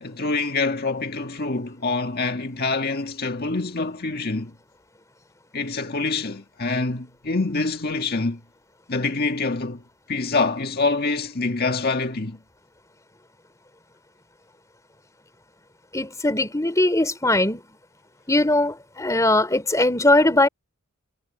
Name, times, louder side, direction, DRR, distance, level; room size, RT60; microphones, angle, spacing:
voice 1, 0.0-4.5 5.5-8.4 8.9-9.8 10.1-12.4, left 3 dB, 45° left, 1.7 m, -25 dB
voice 2, 15.9-17.6 18.3-20.5, left 2 dB, 15° left, 3.1 m, -20 dB
head